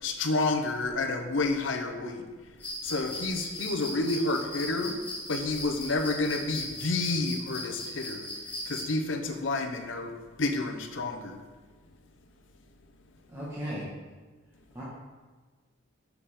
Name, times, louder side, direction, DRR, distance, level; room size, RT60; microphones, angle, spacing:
voice 1, 0.0-2.3 2.8-4.9 5.3-11.4, left 2 dB, 70° left, 5 dB, 0.8 m, -30 dB
sound 1, 2.6-8.8, left 1 dB, 10° left, 2.5 m, -38 dB
voice 2, 13.3-13.9 14.7-14.8, equal, 15° right, -9 dB, 1.2 m, -36 dB
7.0 x 5.7 x 4.1 m, 1.3 s
head